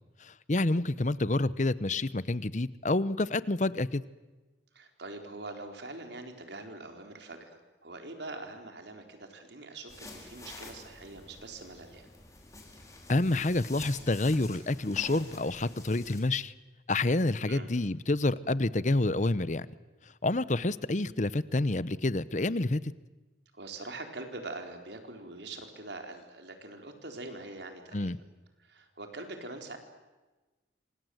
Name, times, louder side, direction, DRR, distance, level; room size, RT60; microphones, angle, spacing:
voice 1, 0.5-4.0 13.1-16.5 16.9-19.7 20.2-22.8 27.9-28.2, left 2 dB, 40° left, 17 dB, 0.9 m, -28 dB
voice 2, 4.7-12.1 17.5-17.7 23.5-28.1 28.6-29.8, right 2 dB, 75° right, 5 dB, 4.3 m, -43 dB
sound 1, 9.9-16.2, left 2 dB, 20° left, 5.0 m, -49 dB
27.5 x 26.5 x 8.0 m, 1.2 s
head